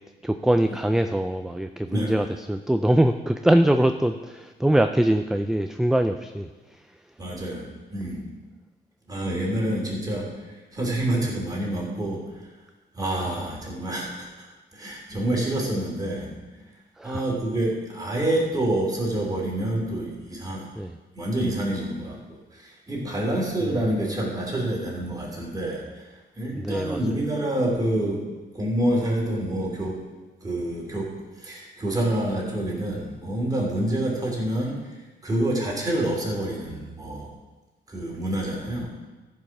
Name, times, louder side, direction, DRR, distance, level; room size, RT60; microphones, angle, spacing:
voice 1, 0.2-6.5 13.4-13.5 17.0-17.3 20.8-21.0 23.6-23.8 26.5-27.2, right 1 dB, ahead, 7 dB, 0.3 m, -23 dB
voice 2, 7.2-8.3 9.1-12.4 12.9-14.5 14.7-16.3 17.0-20.7 21.1-22.2 22.5-25.8 26.4-28.2 28.5-30.0 30.4-31.1 31.4-34.9 35.2-37.3 37.9-38.9, right 1 dB, 20° right, -3 dB, 3.2 m, -27 dB
14.0 x 5.5 x 6.0 m, 1.2 s
cardioid pair, 125°, 19 cm